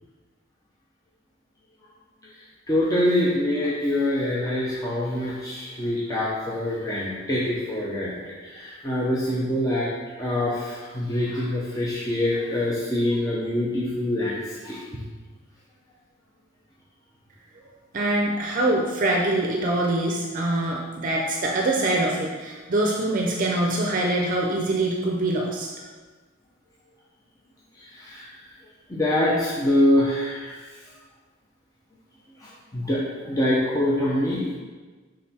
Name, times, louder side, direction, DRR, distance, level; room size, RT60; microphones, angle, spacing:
voice 1, 2.7-9.9 10.2-15.0 27.8-28.4 28.9-30.7 32.4-34.6, left 1 dB, 20° left, -6 dB, 0.7 m, -25 dB
voice 2, 17.9-25.7, right 1 dB, 45° right, 0 dB, 0.6 m, -24 dB
6.5 x 3.8 x 4.2 m, 1.4 s
head